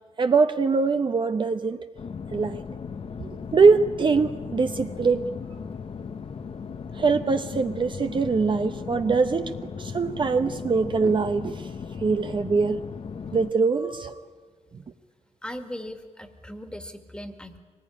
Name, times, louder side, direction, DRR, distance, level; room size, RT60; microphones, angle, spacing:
voice 1, 0.2-1.8 2.3-2.6 3.2-5.3 6.9-11.7 12.0-12.8 13.3-14.2, right 4 dB, 40° right, 7 dB, 0.9 m, -23 dB
sound 1, 2.0-13.5, left 6 dB, 50° left, 0.9 m, -37 dB
voice 2, 15.4-17.6, left 1 dB, 5° left, 7 dB, 2.0 m, -38 dB
24.0 x 19.5 x 10.0 m, 1.5 s
cardioid pair, 110°, 13 cm